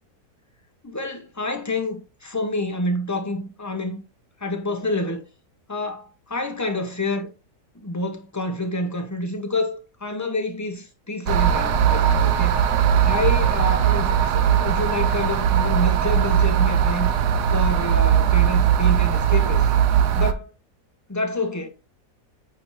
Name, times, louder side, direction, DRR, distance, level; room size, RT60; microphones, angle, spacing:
voice 1, 0.8-4.0 4.4-5.2 5.7-7.3 7.7-12.7 13.0-17.1 17.5-19.7 20.2-20.5 21.1-21.7, left 2 dB, 15° left, 0.6 m, -28 dB
sound 1, 11.3-20.3, right 9 dB, 85° right, 1.2 m, -19 dB
8.6 x 3.5 x 3.1 m
omnidirectional pair, 1.7 m